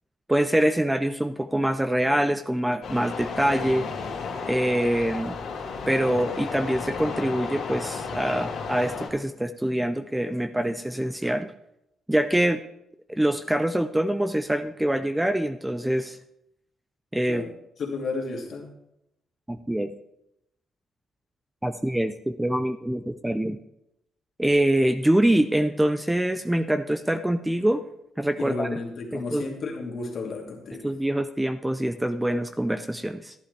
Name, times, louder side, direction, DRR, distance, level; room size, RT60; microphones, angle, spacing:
voice 1, 0.3-3.9 4.4-5.4 5.9-11.5 12.1-12.6 13.1-16.2 17.1-17.4 19.5-19.9 21.6-23.6 24.4-27.8 28.2-28.7 29.1-29.5 30.8-33.3, right 1 dB, 10° right, 9 dB, 0.5 m, -24 dB
sound 1, 2.8-9.1, left 5 dB, 70° left, 2.5 m, -33 dB
voice 2, 17.8-18.7 28.4-30.9, left 3 dB, 55° left, 1 dB, 2.3 m, -32 dB
11.5 x 11.0 x 3.3 m, 0.82 s
cardioid pair, 90°, 0 cm